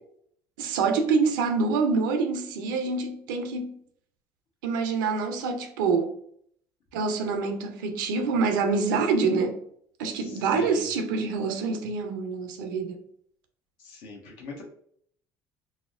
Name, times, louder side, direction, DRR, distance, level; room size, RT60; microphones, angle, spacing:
voice 1, 0.6-3.8 4.6-6.1 6.9-9.6 10.0-13.0, right 4 dB, 85° right, 0.5 m, -26 dB
voice 2, 10.2-10.9 13.8-14.6, left 3 dB, 70° left, 0.9 m, -42 dB
4.1 x 2.0 x 2.4 m
hypercardioid pair, 65°, 10 cm